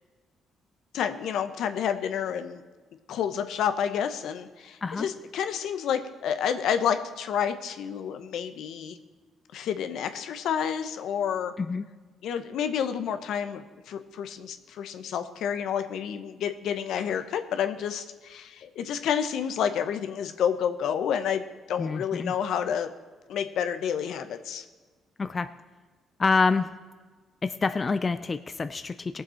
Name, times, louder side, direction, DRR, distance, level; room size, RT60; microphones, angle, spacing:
voice 1, 0.9-2.6 3.1-9.0 9.5-11.5 12.2-21.4 21.7-22.9 23.3-24.6, left 8 dB, 80° left, 9 dB, 0.8 m, -29 dB
voice 2, 21.8-22.3 25.2-25.5 26.2-26.7 27.4-29.2, left 4 dB, 30° left, 12 dB, 0.4 m, -27 dB
18.0 x 7.4 x 4.4 m, 1.4 s
cardioid pair, 90°, 0 cm